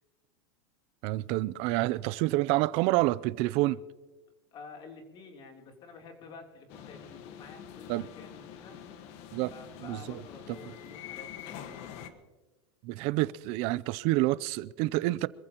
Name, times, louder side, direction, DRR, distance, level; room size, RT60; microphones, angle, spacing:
voice 1, 1.0-3.8 7.9-8.1 9.3-9.5 9.8-10.2 12.8-15.3, right 18 dB, 50° right, 0.5 m, -28 dB
voice 2, 4.5-8.8 9.5-12.2, left 4 dB, 35° left, 3.4 m, -50 dB
sound 1, 6.7-12.1, left 9 dB, 55° left, 1.5 m, -45 dB
26.0 x 15.0 x 3.0 m
supercardioid pair, 135°, 13 cm